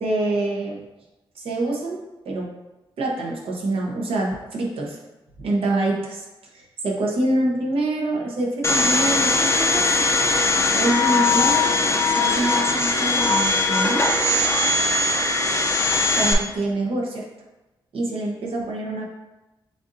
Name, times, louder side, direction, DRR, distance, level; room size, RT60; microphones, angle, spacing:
voice 1, 0.0-0.8 1.3-2.5 3.0-5.0 5.4-6.3 6.5-11.8 12.0-14.2 16.2-17.3 17.9-19.1, right 2 dB, 75° right, -2 dB, 1.0 m, -26 dB
Domestic sounds home sounds, 8.6-16.3, left 3 dB, 30° left, 0.6 m, -20 dB
6.8 x 2.6 x 2.7 m, 1.0 s
cardioid pair, 75°, 9 cm